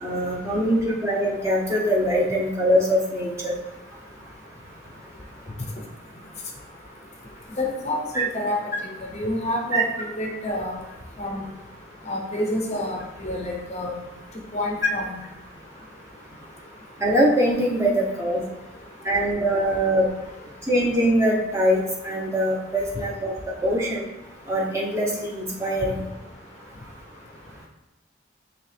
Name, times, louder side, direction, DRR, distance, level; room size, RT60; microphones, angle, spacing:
voice 1, 0.0-3.5 9.7-9.8 17.0-18.4 19.0-20.1 20.7-23.3 23.6-24.0 24.5-26.0, equal, 15° right, -4 dB, 1.0 m, -22 dB
voice 2, 7.6-8.6 9.1-9.9 10.2-10.8 11.2-11.4 12.1-13.9 14.5-15.2, left 1 dB, 35° left, 0 dB, 0.8 m, -28 dB
9.1 x 3.2 x 3.4 m, 0.98 s
head